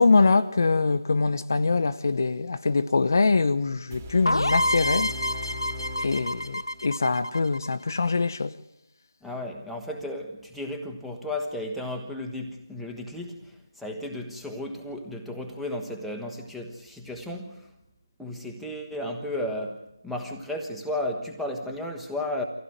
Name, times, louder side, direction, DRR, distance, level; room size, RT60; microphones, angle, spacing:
voice 1, 0.0-5.1 6.0-8.5, left 4 dB, 45° left, 0.8 m, -23 dB
sound 1, 3.9-6.9, left 2 dB, 25° right, 2.9 m, -39 dB
sound 2, 4.3-8.0, left 1 dB, 90° left, 1.0 m, -28 dB
voice 2, 9.2-17.7 18.2-22.4, left 1 dB, ahead, 1.2 m, -34 dB
25.0 x 16.0 x 9.3 m
figure-of-eight pair, 165°, 2 cm